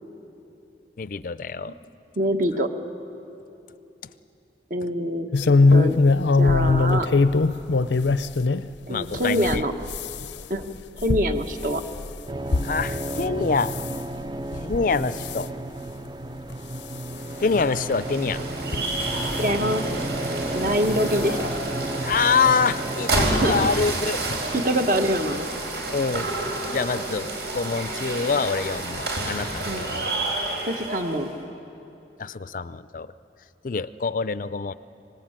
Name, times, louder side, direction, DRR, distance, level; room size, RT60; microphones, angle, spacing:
voice 1, 1.0-1.7 8.9-9.6 12.6-13.7 14.6-15.5 17.4-18.4 22.0-24.2 25.9-26.3 26.7-30.1 32.2-33.1 33.6-34.7, left 5 dB, 50° left, 15 dB, 0.5 m, -25 dB
voice 2, 2.2-2.7 4.7-5.3 5.7-6.0 6.4-7.1 8.9-9.7 10.5-10.7 11.0-11.8 19.4-19.9 20.5-21.4 23.4-23.6 24.5-25.5 29.7-29.9 30.6-31.3, equal, 50° right, 6 dB, 1.4 m, -24 dB
sound 1, 5.3-8.7 9.1-13.2 13.6-14.0 14.5-14.9 15.1-15.4 16.1-16.2 16.5-16.6 17.7-17.8 18.6-19.4 20.6-20.8 21.1-21.2 21.5-21.6, left 3 dB, 90° left, 0.6 m, -21 dB
sound 2, 12.3-23.9, right 1 dB, 25° right, 0.4 m, -32 dB
sound 3, 17.2-31.3, right 2 dB, 70° right, 4.6 m, -29 dB
24.0 x 19.5 x 8.9 m, 2.9 s
head